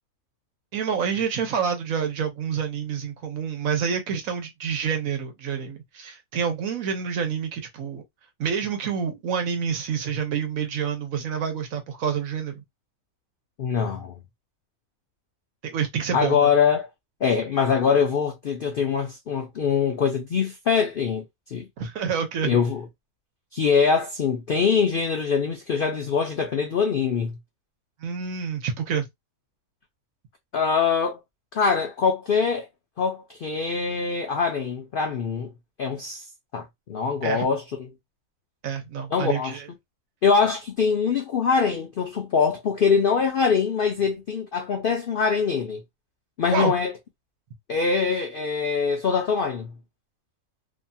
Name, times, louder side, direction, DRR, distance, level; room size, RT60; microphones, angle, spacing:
voice 1, 0.7-8.0 8.4-12.6 15.6-16.5 21.8-22.6 28.0-29.1 37.2-37.5 38.6-39.7 46.5-46.7, right 7 dB, 70° right, 1.1 m, -28 dB
voice 2, 13.6-14.1 16.1-16.9 17.2-21.6 22.4-22.8 23.5-27.4 30.5-31.2 31.5-32.7 33.0-35.5 35.8-36.2 36.5-37.6 39.1-39.6 40.2-45.8 46.4-46.9 47.7-49.7, left 6 dB, 70° left, 0.5 m, -23 dB
2.8 x 2.7 x 2.2 m
omnidirectional pair, 1.5 m